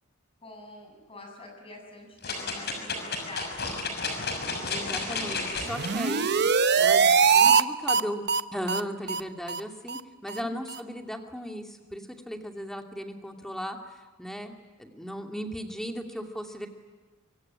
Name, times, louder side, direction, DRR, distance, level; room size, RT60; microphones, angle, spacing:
voice 1, 0.4-3.8 10.4-10.5, left 2 dB, 25° left, 3 dB, 7.4 m, -46 dB
sound 1, 2.2-5.9 6.5-6.6, left 3 dB, 50° left, 6.2 m, -32 dB
voice 2, 4.7-6.5 6.7-8.2 8.5-16.7, equal, ahead, 3 dB, 2.6 m, -37 dB
sound 2, 5.6-7.6 7.9-8.0 8.3-8.4 8.7-8.8 9.1-9.2 9.5-9.6 9.9-10.0 10.3-10.4 10.7-10.8, right 6 dB, 55° right, 0.9 m, -22 dB
24.5 x 24.0 x 9.9 m, 1.3 s
head